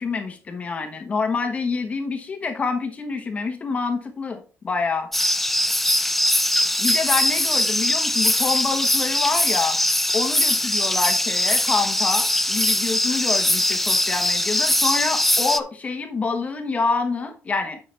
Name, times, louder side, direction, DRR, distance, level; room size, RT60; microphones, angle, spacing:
voice 1, 0.0-5.1 6.8-9.8 10.1-17.8, left 4 dB, 30° left, 5 dB, 1.1 m, -27 dB
sound 1, 5.1-15.6, left 1 dB, 5° left, 0.4 m, -21 dB
9.2 x 5.8 x 3.3 m, 0.35 s
cardioid pair, 165°, 5 cm